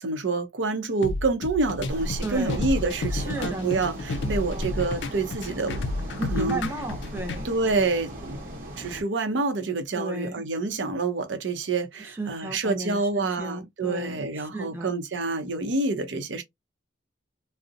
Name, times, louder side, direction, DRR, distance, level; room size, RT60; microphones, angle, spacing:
voice 1, 0.0-5.9 6.3-6.6 7.4-8.4 8.8-16.4, right 3 dB, 85° right, 0.6 m, -27 dB
sound 1, 1.0-7.4, left 2 dB, 75° left, 0.4 m, -31 dB
sound 2, 1.9-9.0, equal, 50° right, 0.9 m, -37 dB
voice 2, 2.2-2.6 3.1-3.8 4.2-4.6 6.2-7.5 10.0-10.4 12.0-14.9, right 2 dB, 15° right, 0.5 m, -34 dB
2.6 x 2.0 x 2.4 m
head